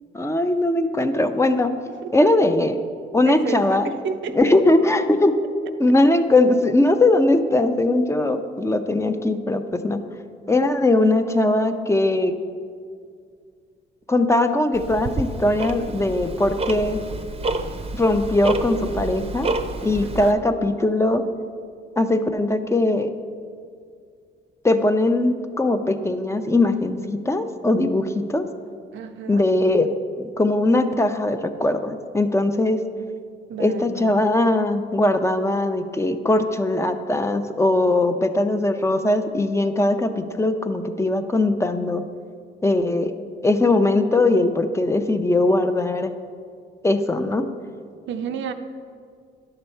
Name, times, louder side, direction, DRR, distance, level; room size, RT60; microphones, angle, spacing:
voice 1, 0.1-1.7 2.1-2.8 3.1-3.9 4.3-5.3 5.8-10.0 10.5-12.4 14.1-17.0 18.0-19.5 19.8-21.2 22.0-23.1 24.6-28.4 29.3-29.9 30.2-32.8 33.6-42.0 42.6-43.1 43.4-46.1 46.8-47.5, left 2 dB, 15° left, 7 dB, 0.5 m, -20 dB
voice 2, 3.3-4.6 20.0-20.4 28.9-29.5 33.5-34.1 48.1-48.5, right 7 dB, 70° right, 8 dB, 0.6 m, -31 dB
Tick-tock, 14.7-20.3, right 3 dB, 30° right, 0.7 m, -29 dB
10.5 x 6.8 x 4.4 m, 2.2 s
cardioid pair, 90°, 20 cm